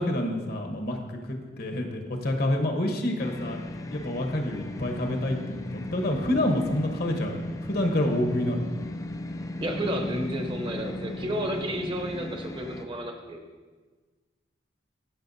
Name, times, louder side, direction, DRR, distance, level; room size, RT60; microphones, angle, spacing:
voice 1, 0.0-3.6 3.9-8.7, left 1 dB, 60° left, 3 dB, 1.1 m, -28 dB
sound 1, 3.2-12.9, left 1 dB, 20° left, 0.3 m, -37 dB
voice 2, 9.6-13.4, equal, 30° right, 3 dB, 0.8 m, -31 dB
13.5 x 6.6 x 2.7 m, 1.4 s
head